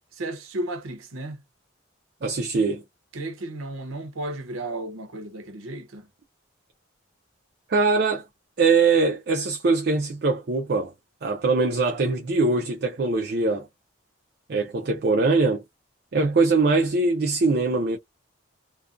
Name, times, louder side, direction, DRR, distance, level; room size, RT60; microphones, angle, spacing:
voice 1, 0.2-1.4 3.1-6.1, right 1 dB, 90° right, 0.7 m, -33 dB
voice 2, 2.2-2.8 7.7-8.2 8.6-10.9 11.2-13.7 14.5-15.6 16.1-18.0, right 3 dB, 50° right, 0.4 m, -22 dB
2.4 x 2.1 x 2.4 m
head